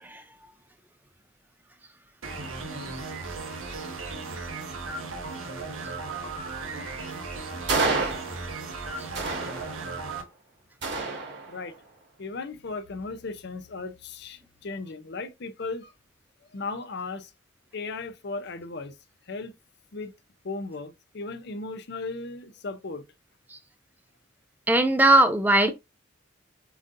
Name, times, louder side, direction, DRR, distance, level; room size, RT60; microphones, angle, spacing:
sound 1, 2.2-10.2, right 3 dB, 85° right, 1.1 m, -36 dB
sound 2, 7.7-8.7 9.1-10.1 10.8-11.8, right 3 dB, 60° right, 1.4 m, -29 dB
voice 1, 12.2-15.9 16.5-17.3 17.7-18.9 19.3-19.5 19.9-20.1 20.4-23.0, left 3 dB, 55° left, 0.6 m, -36 dB
voice 2, 24.7-25.7, right 1 dB, 10° right, 0.3 m, -19 dB
7.1 x 2.7 x 2.6 m
head